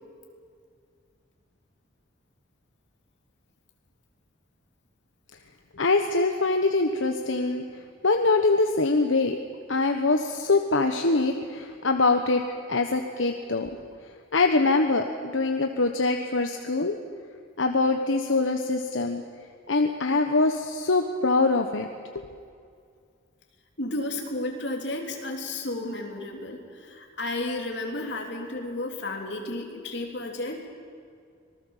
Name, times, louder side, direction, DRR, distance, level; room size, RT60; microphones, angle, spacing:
voice 1, 5.8-7.6 8.0-9.4 9.7-12.4 12.7-13.8 14.3-17.0 17.6-19.2 19.7-21.9, left 3 dB, 80° left, 5 dB, 1.2 m, -23 dB
voice 2, 23.8-30.7, left 2 dB, 60° left, 2 dB, 3.4 m, -32 dB
25.5 x 19.5 x 7.4 m, 2.3 s
head